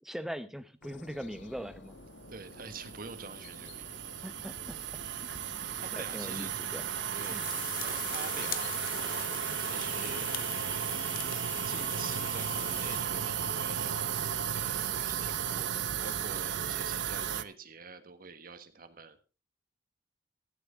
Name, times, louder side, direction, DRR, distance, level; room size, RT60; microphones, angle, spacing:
voice 1, 0.0-1.9 4.2-4.8 5.3-6.9 7.3-7.4, equal, ahead, 11 dB, 0.8 m, -41 dB
sound 1, 0.8-11.5, left 2 dB, 80° left, 1.3 m, -51 dB
voice 2, 2.3-4.1 5.7-6.5 7.1-7.4 7.8-10.3 11.6-14.1 14.5-19.2, right 4 dB, 50° right, 10 dB, 1.5 m, -46 dB
sound 2, 2.3-17.4, right 9 dB, 75° right, 0.8 m, -34 dB
sound 3, 5.0-5.7 6.7-13.0, left 12 dB, 50° left, 0.8 m, -42 dB
15.5 x 12.5 x 3.6 m, 0.33 s
head